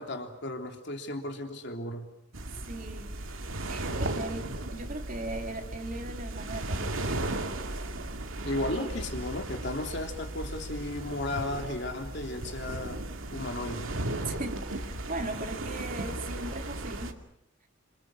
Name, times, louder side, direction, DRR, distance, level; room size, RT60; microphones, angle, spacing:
voice 1, 0.0-2.1 8.5-13.0 13.3-13.9, left 1 dB, 55° left, 4 dB, 3.3 m, -34 dB
sound 1, 2.3-17.1, right 1 dB, 80° right, 2.4 m, -36 dB
voice 2, 2.7-3.1 3.7-7.0 8.7-8.9 14.3-17.2, right 2 dB, 40° right, 3 dB, 3.3 m, -38 dB
29.0 x 26.0 x 6.4 m, 0.78 s
head